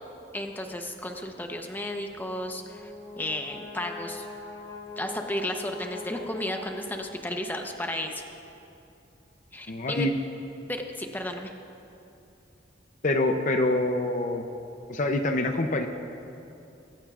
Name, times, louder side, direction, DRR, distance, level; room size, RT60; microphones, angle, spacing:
voice 1, 0.3-4.2 5.0-8.2 9.5-10.1 10.7-11.5, left 1 dB, 10° left, 3 dB, 0.8 m, -33 dB
Brass instrument, 2.2-7.3, left 3 dB, 25° left, 2.0 m, -42 dB
voice 2, 9.7-10.2 13.0-14.4 14.9-15.9, left 2 dB, 45° left, 5 dB, 0.6 m, -25 dB
22.5 x 15.0 x 2.5 m, 2.7 s
head